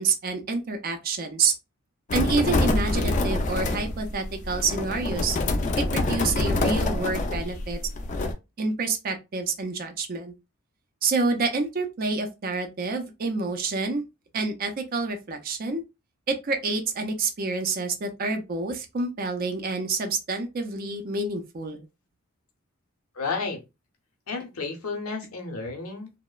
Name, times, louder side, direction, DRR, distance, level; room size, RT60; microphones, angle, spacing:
voice 1, 0.0-1.5 2.1-5.4 5.8-7.8 8.6-10.3 11.0-14.0 14.3-15.8 16.3-21.9, right 3 dB, 40° right, 0.4 m, -28 dB
sound 1, 2.1-8.3, left 2 dB, 35° left, 0.3 m, -26 dB
voice 2, 23.1-23.6 24.3-26.1, left 4 dB, 85° left, 0.7 m, -32 dB
2.8 x 2.1 x 2.3 m
head